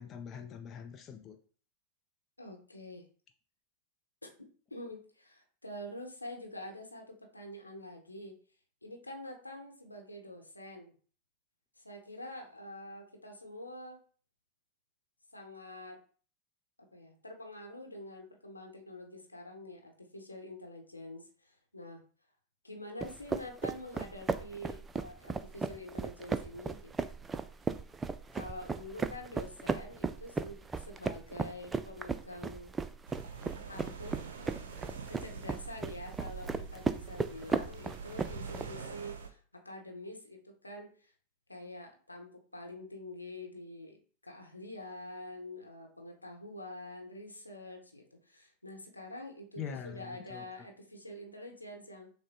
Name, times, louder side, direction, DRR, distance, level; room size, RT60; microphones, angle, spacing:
voice 1, 0.0-1.4 49.6-50.4, left 7 dB, 25° left, 0.6 m, -43 dB
voice 2, 2.4-3.0 4.2-4.3 4.7-8.3 8.8-10.9 11.8-14.0 15.3-16.0 16.9-22.0 22.6-26.9 28.3-32.8 33.7-34.2 35.1-41.1 41.5-52.1, left 1 dB, 85° left, 0.9 m, -46 dB
sound 1, 23.0-38.7, right 4 dB, 15° right, 0.3 m, -36 dB
sound 2, 33.1-39.3, right 5 dB, 65° right, 0.6 m, -45 dB
6.2 x 2.2 x 3.7 m
figure-of-eight pair, 90°, 0 cm